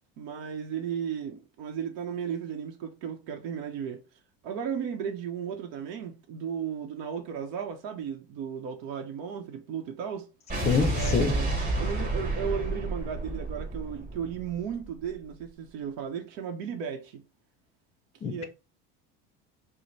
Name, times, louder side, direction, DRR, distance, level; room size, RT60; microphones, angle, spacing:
voice 1, 0.2-4.0 4.4-10.3 10.9-11.5 11.8-17.2 18.2-18.4, right 7 dB, 70° right, 0.8 m, -35 dB
Explosion, 10.5-14.8, right 2 dB, 25° right, 2.5 m, -30 dB
voice 2, 10.7-11.4 18.2-18.4, left 6 dB, 20° left, 0.6 m, -26 dB
4.9 x 2.1 x 4.1 m
cardioid pair, 165°, 29 cm